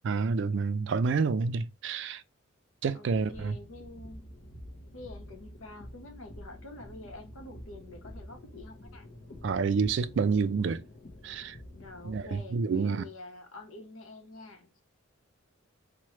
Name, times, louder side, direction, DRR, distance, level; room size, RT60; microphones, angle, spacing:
voice 1, 0.0-2.2 2.8-3.5 9.4-10.8 11.2-11.6 12.0-13.1, right 5 dB, 60° right, 0.3 m, -28 dB
sound 1, 3.1-12.4, left 1 dB, 50° left, 0.7 m, -48 dB
voice 2, 3.3-4.3 4.9-9.1 11.7-14.7, left 2 dB, 85° left, 0.8 m, -47 dB
3.1 x 2.1 x 2.8 m
head